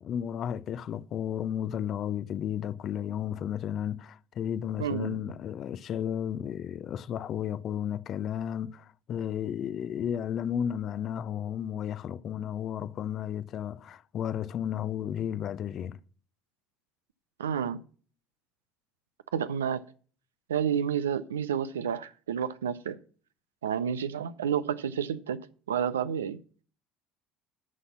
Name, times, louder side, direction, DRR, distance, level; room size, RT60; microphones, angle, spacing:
voice 1, 0.0-16.0, left 9 dB, 50° left, 0.5 m, -33 dB
voice 2, 4.8-5.2 17.4-17.8 19.3-19.8 20.5-23.0 23.6-25.4 25.7-26.4, right 8 dB, 90° right, 0.5 m, -30 dB
11.0 x 4.2 x 7.1 m
hypercardioid pair, 65°, 0 cm